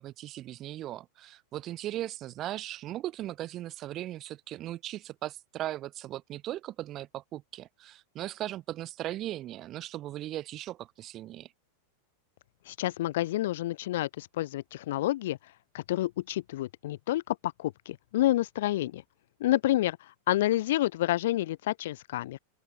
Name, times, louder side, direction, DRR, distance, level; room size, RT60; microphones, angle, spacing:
voice 1, 0.0-11.5, right 14 dB, 35° right, 1.1 m, -38 dB
voice 2, 12.7-15.4 15.7-19.0 19.4-20.0 20.3-22.4, left 15 dB, 55° left, 0.3 m, -29 dB
open air
figure-of-eight pair, 90°, 0 cm